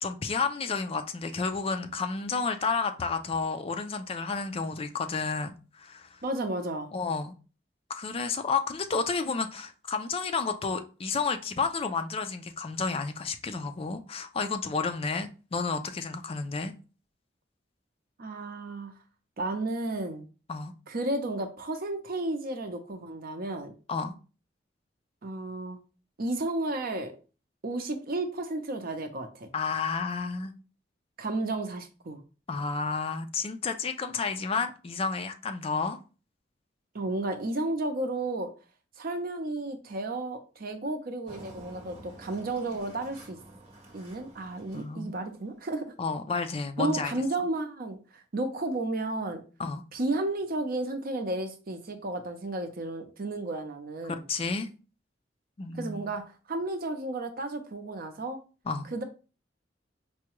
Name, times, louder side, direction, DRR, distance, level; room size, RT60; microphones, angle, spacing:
voice 1, 0.0-6.2 6.9-7.3 7.9-16.7 20.5-20.7 23.9-24.1 29.5-30.5 32.5-36.0 44.7-45.1 46.0-47.1 49.6-49.8 54.1-54.7 55.6-56.2 58.7-58.9, left 4 dB, 35° left, 0.4 m, -31 dB
voice 2, 6.2-6.9 18.2-18.9 19.4-20.3 20.9-23.7 25.2-25.8 26.2-27.1 27.6-29.5 31.2-32.2 36.9-38.5 39.0-43.4 43.9-45.9 46.8-49.4 49.9-54.3 55.7-58.4 58.9-59.0, right 2 dB, 55° right, 0.6 m, -33 dB
Engine, 41.3-45.8, right 1 dB, 40° right, 1.2 m, -50 dB
4.7 x 2.2 x 2.9 m
head